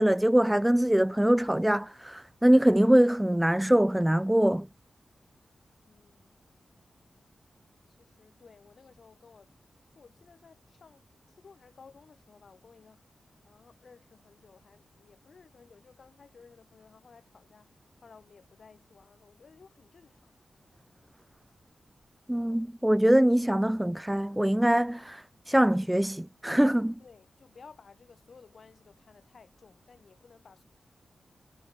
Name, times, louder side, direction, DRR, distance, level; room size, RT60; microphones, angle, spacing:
voice 1, 0.0-4.7 22.3-26.9, right 1 dB, 5° right, 0.4 m, -23 dB
voice 2, 5.8-6.3 7.9-20.4 27.0-30.6, left 5 dB, 60° left, 8.0 m, -56 dB
wide cardioid pair, 110°, 0 cm